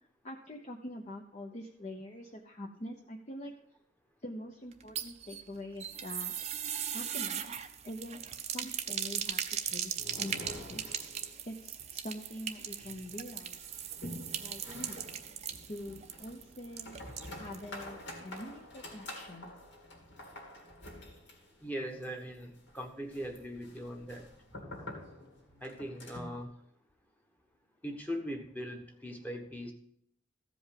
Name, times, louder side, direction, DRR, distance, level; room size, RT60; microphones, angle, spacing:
voice 1, 0.2-3.5 4.2-6.3 6.9-7.5 7.8-10.8 11.4-13.6 14.0-15.1 15.7-17.0 17.3-19.5, left 1 dB, 35° left, 0 dB, 0.8 m, -45 dB
sound 1, 4.7-17.7 18.0-18.1 18.4-18.5, right 8 dB, 35° right, 0.6 m, -39 dB
sound 2, 9.2-11.6 11.8-11.9 12.2-12.3 12.8-26.4, left 1 dB, 65° left, 2.4 m, -48 dB
voice 2, 21.6-24.3 24.6-24.9 25.6-26.5 27.8-29.7, equal, 10° left, 3 dB, 1.1 m, -40 dB
14.5 x 5.2 x 5.2 m, 0.69 s
head